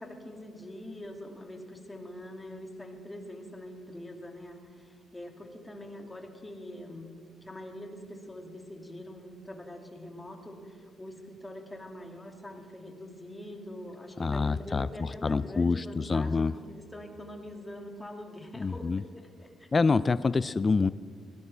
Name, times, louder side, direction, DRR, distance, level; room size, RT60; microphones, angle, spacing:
voice 1, 0.0-7.1 7.4-19.7, left 1 dB, 15° left, 2 dB, 2.4 m, -44 dB
voice 2, 14.2-16.5 18.6-19.0 19.7-20.9, left 4 dB, 30° left, 15 dB, 0.3 m, -26 dB
21.0 x 17.0 x 3.4 m, 2.2 s
cardioid pair, 90°, 0 cm